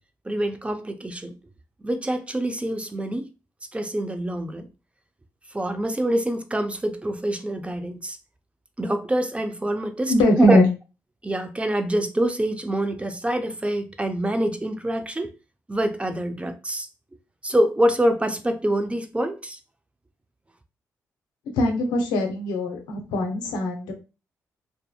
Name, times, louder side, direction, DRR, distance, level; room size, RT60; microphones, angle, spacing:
voice 1, 0.2-1.4 1.8-3.3 3.7-4.7 5.5-8.2 8.8-10.6 11.2-15.3 15.7-16.9 17.4-19.6, right 1 dB, 15° right, 0.5 m, -25 dB
voice 2, 10.1-10.7 21.6-23.9, left 1 dB, 85° left, 0.6 m, -21 dB
2.6 x 2.4 x 2.3 m
supercardioid pair, 50°, 7 cm